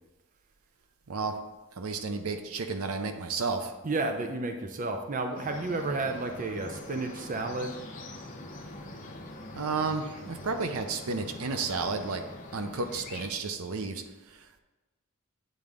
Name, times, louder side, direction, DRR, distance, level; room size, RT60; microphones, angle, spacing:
voice 1, 1.8-3.7 9.5-12.2 12.5-14.6, right 4 dB, 80° right, 7 dB, 0.6 m, -32 dB
voice 2, 3.8-7.8, right 3 dB, 35° right, 5 dB, 0.5 m, -32 dB
sound 1, 5.3-13.3, left 2 dB, 35° left, 0.8 m, -44 dB
8.7 x 3.8 x 3.5 m, 1.2 s
head